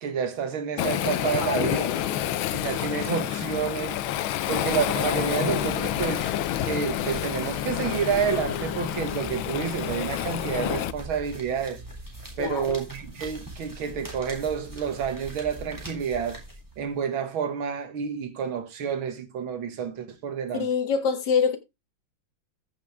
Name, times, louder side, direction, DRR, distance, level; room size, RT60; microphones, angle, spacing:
voice 1, 0.0-1.9 2.5-4.0 4.5-6.3 6.6-11.8 12.4-16.4 16.8-20.7, right 7 dB, 85° right, 2.2 m, -29 dB
Waves surf, 0.8-10.9, left 12 dB, 85° left, 1.5 m, -28 dB
voice 2, 1.3-2.4 2.8-3.0 12.4-12.8 20.6-21.6, left 6 dB, 60° left, 2.2 m, -27 dB
sound 1, 4.2-17.0, right 1 dB, 10° right, 3.3 m, -42 dB
14.5 x 6.3 x 3.5 m
omnidirectional pair, 2.2 m